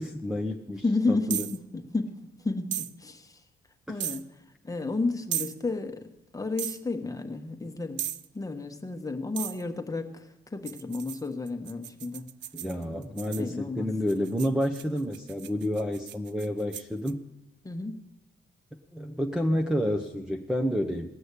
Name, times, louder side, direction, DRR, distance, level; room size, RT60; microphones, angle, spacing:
voice 1, 0.0-1.5 3.9-4.1 12.5-17.2 18.9-21.1, equal, 5° right, -1 dB, 0.9 m, -30 dB
voice 2, 0.8-3.4 3.9-4.2 4.6-8.0 8.3-12.3 13.4-13.9 17.6-18.0, left 3 dB, 15° left, 5 dB, 1.4 m, -32 dB
sound 1, 1.3-1.6 2.7-2.9 4.0-4.2 5.3-5.6 6.6-6.8 8.0-8.3 9.4-9.6 10.7-13.5 14.1-17.1, right 12 dB, 65° right, 0.5 m, -35 dB
18.0 x 6.2 x 8.4 m, 0.95 s
cardioid pair, 90°, 20 cm